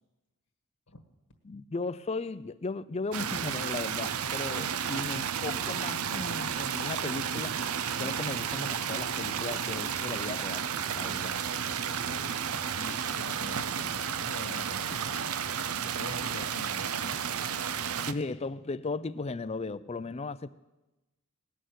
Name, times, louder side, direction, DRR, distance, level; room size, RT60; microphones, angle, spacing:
voice 1, 1.4-7.6 8.0-10.7 10.9-11.4 18.1-20.5, left 3 dB, 30° left, 0.4 m, -36 dB
sound 1, 3.1-18.1, right 7 dB, 70° right, 0.6 m, -32 dB
voice 2, 12.0-15.3 15.8-17.2, left 2 dB, 65° left, 1.5 m, -45 dB
18.5 x 6.5 x 9.3 m
head